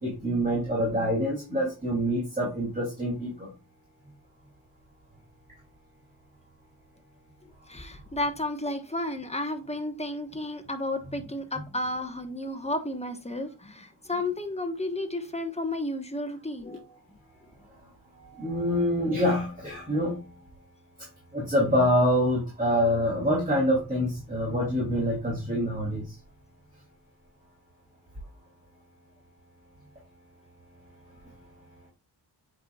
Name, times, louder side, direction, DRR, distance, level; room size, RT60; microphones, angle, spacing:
voice 1, 0.0-3.5 18.4-20.2 21.3-26.0, equal, 20° right, -4 dB, 2.7 m, -26 dB
voice 2, 7.7-17.0, left 1 dB, 15° left, 6 dB, 1.2 m, -32 dB
8.2 x 5.7 x 2.3 m, 0.29 s
wide cardioid pair, 80°, 41 cm